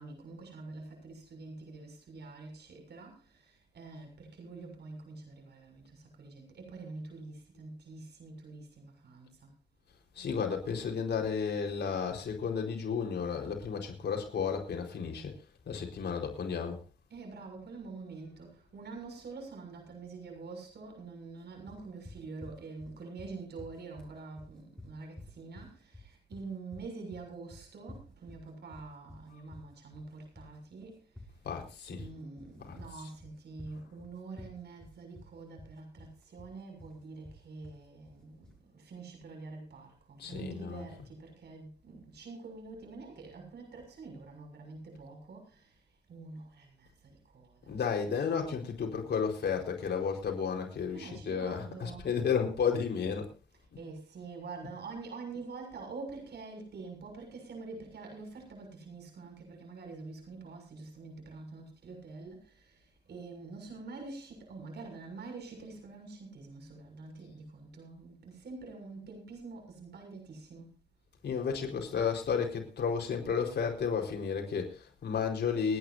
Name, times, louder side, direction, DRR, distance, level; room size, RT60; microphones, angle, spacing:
voice 1, 0.0-9.5 17.1-31.5 31.9-47.9 48.3-48.4 50.9-52.1 53.8-70.7, right 3 dB, 70° right, 2 dB, 6.8 m, -46 dB
voice 2, 10.2-15.3 15.7-16.8 31.4-32.0 32.6-32.8 40.2-40.8 47.7-53.3 71.2-75.8, left 6 dB, 70° left, 2 dB, 4.6 m, -32 dB
sound 1, 21.7-38.6, left 1 dB, 5° left, 6.9 m, -51 dB
30.0 x 10.0 x 2.7 m, 0.31 s
cardioid pair, 85°, 18 cm